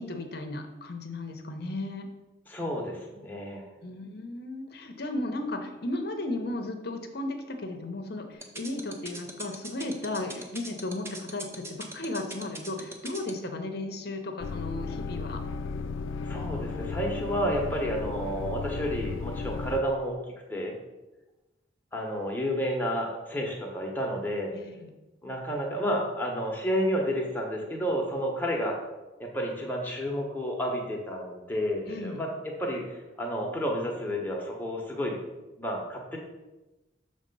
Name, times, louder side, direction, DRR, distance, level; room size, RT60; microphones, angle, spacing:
voice 1, 0.0-2.1 3.8-15.4 24.5-24.9 31.9-32.2, left 2 dB, 50° left, 6 dB, 0.7 m, -35 dB
voice 2, 2.5-3.7 16.2-20.2 20.5-20.7 21.9-24.5 25.2-28.8 29.2-35.2 35.6-36.2, equal, 10° left, -1 dB, 1.0 m, -31 dB
sound 1, 8.4-13.3, right 2 dB, 15° right, 0.5 m, -39 dB
sound 2, 14.4-19.8, left 4 dB, 80° left, 0.3 m, -34 dB
6.5 x 3.3 x 5.4 m, 1.1 s
head